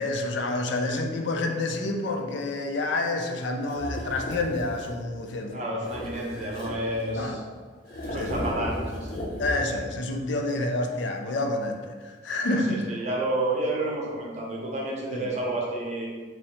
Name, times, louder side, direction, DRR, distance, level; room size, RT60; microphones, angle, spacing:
voice 1, 0.0-5.6 7.2-7.4 8.2-8.3 9.4-11.8 12.0-12.8 15.1-15.3, left 2 dB, 70° left, 3 dB, 0.4 m, -28 dB
sound 1, 3.7-5.0 5.8-7.4 7.9-9.8, equal, 50° left, 0.8 m, -35 dB
voice 2, 5.5-7.4 8.0-9.2 12.5-16.1, right 1 dB, 35° right, -2 dB, 0.7 m, -30 dB
3.1 x 2.7 x 4.2 m, 1.5 s
head